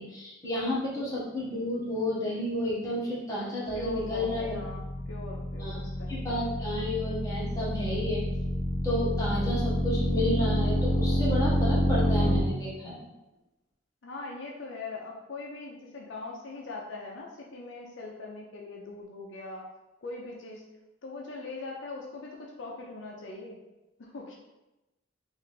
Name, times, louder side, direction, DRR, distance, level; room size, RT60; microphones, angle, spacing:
voice 1, 0.0-4.6 5.6-5.8 6.1-8.2 8.8-13.1, left 1 dB, 15° left, -7 dB, 1.2 m, -31 dB
voice 2, 3.7-6.5 14.0-19.7 20.0-20.6 21.0-23.6 24.0-24.4, left 3 dB, 70° left, -1 dB, 0.5 m, -41 dB
sound 1, 3.7-12.4, equal, 35° left, 1.3 m, -28 dB
3.2 x 2.5 x 4.0 m, 0.99 s
head